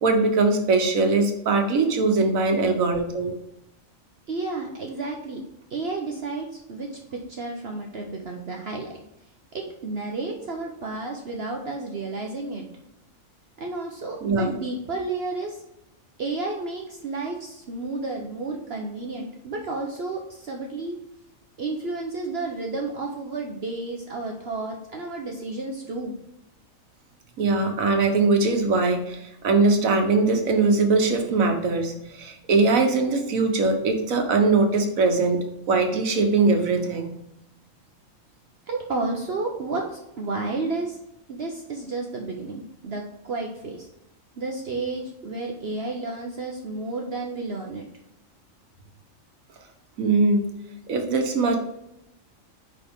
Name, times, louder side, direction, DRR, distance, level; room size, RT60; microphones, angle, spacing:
voice 1, 0.0-3.3 14.2-14.6 27.4-29.2 29.4-37.1 50.0-50.5 50.9-51.6, right 3 dB, 90° right, 5 dB, 1.5 m, -21 dB
voice 2, 4.3-5.4 5.7-9.0 9.5-12.7 13.6-15.6 16.2-21.0 21.6-26.1 38.7-41.0 41.3-43.9 44.4-47.8, right 3 dB, 55° right, 1 dB, 1.1 m, -31 dB
9.8 x 4.0 x 3.6 m, 0.84 s
omnidirectional pair, 1.4 m